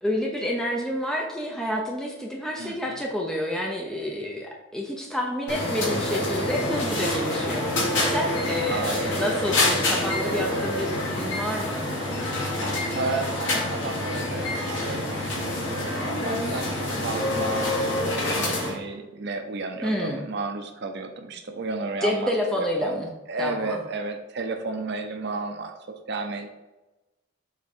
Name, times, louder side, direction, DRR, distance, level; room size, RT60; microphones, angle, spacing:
voice 1, 0.0-11.9 19.8-20.3 22.0-23.1 23.4-23.8, left 1 dB, 5° left, -1 dB, 0.8 m, -29 dB
voice 2, 2.6-3.0 8.7-9.1 13.0-17.7 18.1-22.3 22.6-25.7 26.1-26.5, right 3 dB, 60° right, 5 dB, 0.6 m, -33 dB
sound 1, 5.5-18.8, left 1 dB, 65° left, 2.1 m, -27 dB
7.2 x 3.6 x 4.3 m, 1.1 s
head